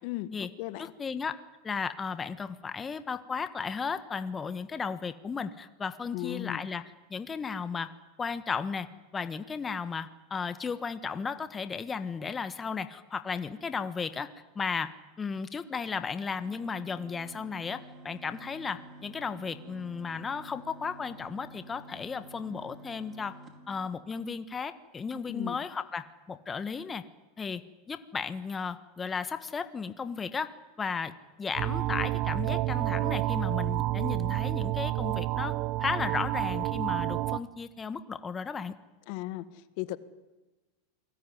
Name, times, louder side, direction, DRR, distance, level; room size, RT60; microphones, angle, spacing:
voice 1, 0.0-0.9 6.1-6.6 25.3-25.6 39.1-40.0, left 16 dB, 60° left, 14 dB, 1.6 m, -36 dB
voice 2, 0.8-1.4 1.6-6.8 7.1-7.9 8.2-8.9 9.1-14.3 14.5-14.9 15.2-23.3 23.7-27.0 27.4-27.6 27.9-30.5 30.8-31.1 31.4-38.7, left 5 dB, 20° left, 11 dB, 1.4 m, -34 dB
sound 1, 16.4-24.5, right 2 dB, 35° right, 4.5 m, -50 dB
sound 2, 31.6-37.4, right 16 dB, 50° right, 0.9 m, -29 dB
28.0 x 20.0 x 10.0 m, 1.1 s
hypercardioid pair, 105°, 0 cm